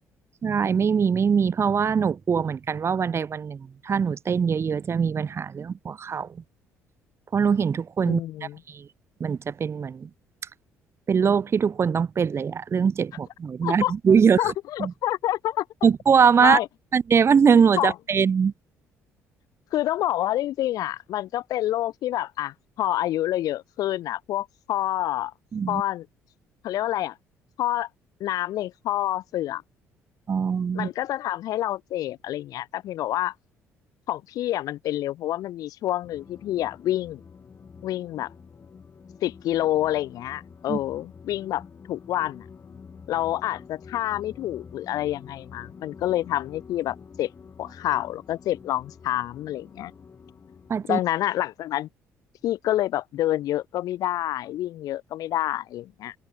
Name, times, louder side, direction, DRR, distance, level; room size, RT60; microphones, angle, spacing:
voice 1, 0.4-6.4 7.3-8.2 8.7-8.9 9.2-10.1 11.1-14.5 14.8-14.9 15.8-16.6 16.9-18.5 25.5-25.8 30.3-30.9 40.7-40.8 50.7-51.0, right 6 dB, 35° right, 1.2 m, -22 dB
voice 2, 8.1-8.6 13.6-13.9 14.4-15.6 16.4-16.7 17.8-17.9 19.7-25.3 25.7-26.0 26.6-27.1 27.6-27.9 28.2-29.6 30.7-33.3 34.1-37.2 37.8-38.3 39.2-41.6 41.9-42.4 43.1-47.3 47.6-49.9 50.9-51.9 52.4-56.2, left 13 dB, 55° left, 0.7 m, -27 dB
sound 1, 36.0-50.8, left 6 dB, 35° left, 3.5 m, -47 dB
figure-of-eight pair, 50°, 7 cm